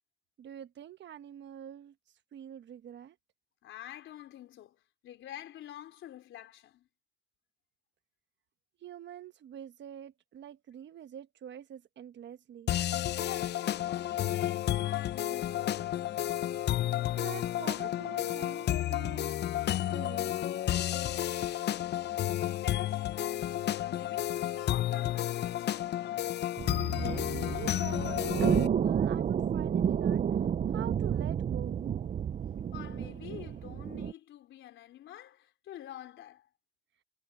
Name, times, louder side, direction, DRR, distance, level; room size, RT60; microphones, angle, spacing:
voice 1, 0.4-1.9 2.3-3.2 8.8-12.7 17.2-19.3 19.9-20.5 26.9-30.4 30.7-31.8, right 10 dB, 65° right, 1.2 m, -45 dB
voice 2, 3.6-6.9 13.2-16.1 22.4-25.8 32.7-36.5, left 12 dB, 80° left, 3.9 m, -46 dB
sound 1, 12.7-28.7, left 12 dB, 60° left, 0.5 m, -31 dB
sound 2, 26.6-34.1, right 8 dB, 40° right, 0.5 m, -31 dB
cardioid pair, 90°, 20 cm